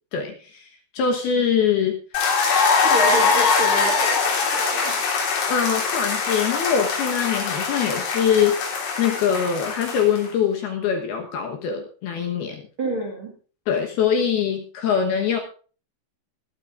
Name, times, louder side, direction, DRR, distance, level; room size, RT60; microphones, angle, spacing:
voice 1, 0.1-2.0 5.5-12.6 13.7-15.4, left 7 dB, 70° left, 3 dB, 2.6 m, -23 dB
sound 1, 2.1-10.3, left 4 dB, 90° left, 6.0 m, -22 dB
voice 2, 2.7-5.0 12.8-13.3, equal, 60° right, 1 dB, 1.3 m, -28 dB
22.0 x 12.5 x 2.5 m, 0.39 s
omnidirectional pair, 5.9 m